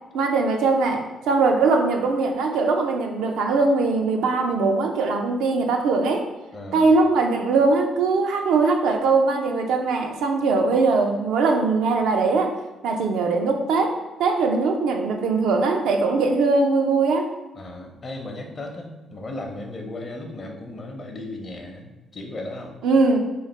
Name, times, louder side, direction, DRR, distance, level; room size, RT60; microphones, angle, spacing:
voice 1, 0.1-6.3 6.7-12.6 12.8-17.3 22.8-23.2, right 3 dB, 85° right, 3 dB, 0.5 m, -21 dB
voice 2, 6.5-6.9 17.5-22.8, left 2 dB, 40° left, 3 dB, 0.7 m, -36 dB
3.1 x 2.4 x 4.3 m, 1.2 s
cardioid pair, 90°, 0 cm